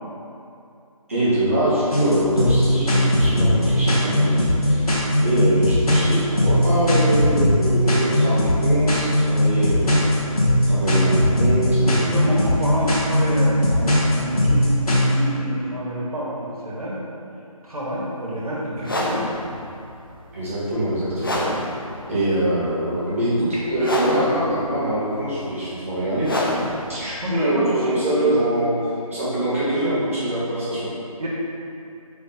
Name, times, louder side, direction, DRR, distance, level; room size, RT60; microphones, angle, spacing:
voice 1, 1.1-4.9 5.2-10.0 10.7-12.3 20.3-21.4 22.1-26.3 26.9-30.9, right 1 dB, 25° right, -10 dB, 0.9 m, -24 dB
sound 1, 1.9-15.1, left 1 dB, 75° left, 1.2 m, -19 dB
voice 2, 11.9-17.0 17.6-19.2 23.5-23.6 27.2-28.4 31.2-31.3, right 1 dB, 75° right, -7 dB, 1.4 m, -27 dB
sound 2, 18.7-28.6, left 1 dB, 35° left, 0.4 m, -29 dB
3.6 x 3.6 x 3.6 m, 2.7 s
figure-of-eight pair, 170°, 19 cm